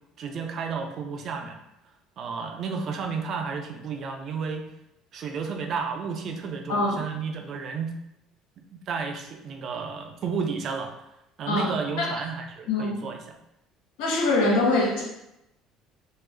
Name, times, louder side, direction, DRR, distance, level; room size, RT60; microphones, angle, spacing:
voice 1, 0.2-1.6 2.2-4.6 5.1-7.9 8.6-10.9 11.4-13.4, right 5 dB, 40° right, 4 dB, 0.4 m, -32 dB
voice 2, 6.7-7.0 11.5-12.2 12.7-13.0 14.0-15.0, left 2 dB, 85° left, -2 dB, 0.9 m, -24 dB
3.3 x 2.4 x 3.3 m, 0.84 s
cardioid pair, 165°, 0 cm